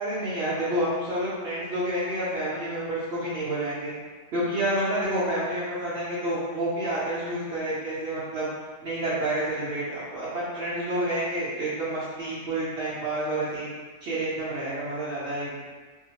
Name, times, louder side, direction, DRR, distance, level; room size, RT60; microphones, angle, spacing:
voice 1, 0.0-3.9 4.3-8.5 8.8-13.7 14.0-15.6, right 1 dB, 65° right, -10 dB, 0.9 m, -29 dB
2.7 x 2.0 x 2.8 m, 1.4 s
omnidirectional pair, 1.3 m